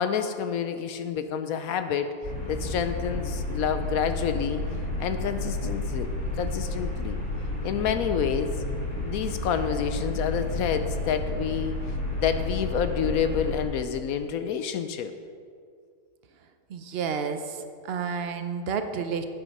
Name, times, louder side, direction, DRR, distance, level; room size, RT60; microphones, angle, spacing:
voice 1, 0.0-2.1 2.5-4.6 5.0-6.1 6.4-7.2 7.6-8.5 9.0-11.7 12.1-15.1, left 7 dB, 70° left, 9 dB, 0.9 m, -28 dB
sound 1, 2.2-13.6, left 2 dB, 30° left, 3.2 m, -31 dB
voice 2, 16.7-19.2, right 6 dB, 60° right, 8 dB, 0.6 m, -31 dB
9.3 x 9.0 x 5.3 m, 2.2 s
omnidirectional pair, 1.7 m